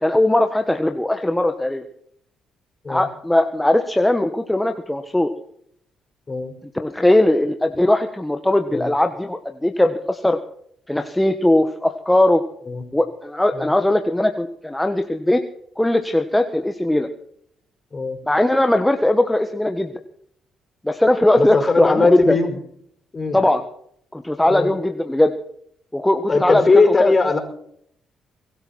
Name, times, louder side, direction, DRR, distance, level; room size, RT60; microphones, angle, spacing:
voice 1, 0.0-1.8 2.9-5.3 6.7-10.4 10.9-12.4 12.9-15.4 15.8-17.1 18.3-19.9 20.8-22.4 23.3-23.6 24.1-25.3 25.9-26.6 27.0-27.1, left 1 dB, 10° left, 6 dB, 1.5 m, -19 dB
voice 2, 21.4-22.5 23.1-23.4 24.5-24.7 26.3-27.4, left 3 dB, 35° left, 6 dB, 5.1 m, -19 dB
23.0 x 12.5 x 4.4 m, 0.67 s
supercardioid pair, 60°, 0 cm